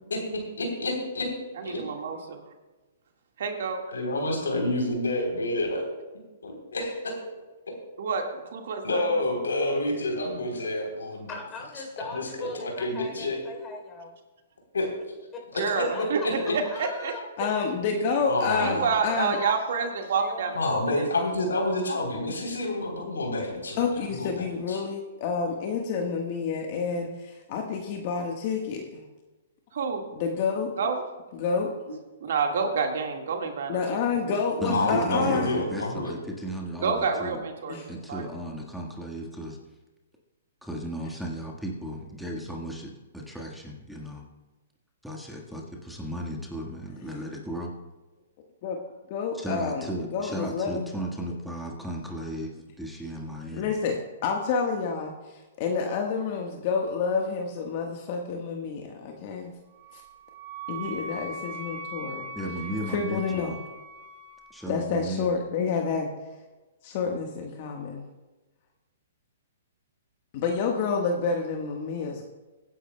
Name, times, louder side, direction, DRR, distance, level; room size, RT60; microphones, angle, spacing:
voice 1, 0.6-1.3 1.6-1.8 3.9-5.8 6.4-7.2 8.8-11.3 12.1-13.4 14.7-14.9 15.5-16.5 18.2-19.0 20.5-23.8 24.1-24.8 34.7-36.1, left 2 dB, 90° left, 1 dB, 3.4 m, -28 dB
voice 2, 1.6-2.4 3.4-3.8 8.0-9.2 15.6-16.2 16.5-17.1 18.6-21.1 29.7-30.1 30.8-31.0 32.2-33.8 34.1-34.4 36.8-38.2, right 5 dB, 65° right, 4 dB, 1.6 m, -29 dB
voice 3, 11.3-14.2 15.3-15.4 15.9-16.3 16.6-17.2 18.5-19.8 20.2-20.6, left 3 dB, 20° left, 1 dB, 3.4 m, -39 dB
voice 4, 17.4-19.4 23.8-29.0 30.2-30.7 31.3-32.0 33.7-35.5 37.7-37.9 48.6-48.8 49.1-50.9 53.5-59.5 59.9-60.0 60.7-62.3 62.9-63.5 64.7-66.1 66.8-68.0 70.3-72.3, left 5 dB, 45° left, 2 dB, 1.3 m, -29 dB
voice 5, 34.6-37.4 37.9-39.6 40.6-44.2 45.0-47.7 49.3-53.7 62.3-63.6 64.5-65.3, right 1 dB, ahead, -1 dB, 1.5 m, -35 dB
Wind instrument woodwind instrument, 59.8-64.5, right 2 dB, 45° right, 1.9 m, -40 dB
23.0 x 9.9 x 2.2 m, 1.2 s
hypercardioid pair, 130°, 0 cm